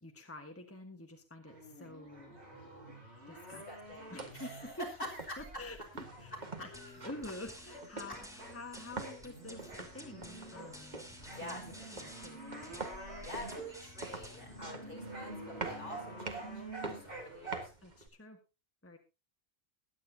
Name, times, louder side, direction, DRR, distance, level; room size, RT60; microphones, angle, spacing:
voice 1, 0.0-2.4 2.7-2.8 3.3-3.6 4.1-4.9 5.4-6.3 6.6-11.0 11.4-12.4 17.8-18.4 18.8-19.0, left 2 dB, 15° left, 4 dB, 1.4 m, -48 dB
sound 1, 1.5-7.8 8.1-17.7, right 2 dB, 90° right, 6.9 m, -48 dB
voice 2, 3.7-5.5 6.3-6.4 6.7-7.0 11.4-11.6 13.2-16.6 16.9-17.7, equal, 55° left, 0 dB, 5.3 m, -46 dB
sound 2, 3.9-18.1, right 3 dB, 45° right, 1.8 m, -47 dB
sound 3, 6.7-14.7, equal, 5° right, 2.7 m, -53 dB
22.0 x 9.5 x 2.8 m, 0.28 s
omnidirectional pair, 1.1 m